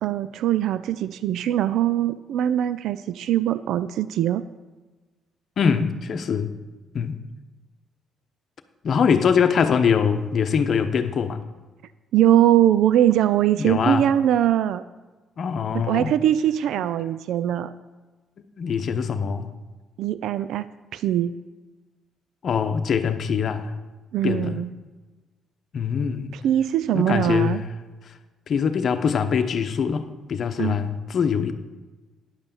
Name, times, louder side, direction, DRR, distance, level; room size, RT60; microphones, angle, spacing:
voice 1, 0.0-4.4 12.1-14.8 15.7-17.7 20.0-20.6 20.9-21.3 24.1-24.7 26.3-27.6 30.6-30.8, right 11 dB, 80° right, 14 dB, 0.4 m, -21 dB
voice 2, 5.6-6.5 6.9-7.2 8.8-11.4 13.6-14.1 15.4-16.1 18.6-19.5 22.4-23.8 24.2-24.6 25.7-26.4 26.9-27.6 28.5-31.5, left 6 dB, 55° left, 8 dB, 0.8 m, -23 dB
10.0 x 5.5 x 7.0 m, 1.2 s
cardioid pair, 90°, 0 cm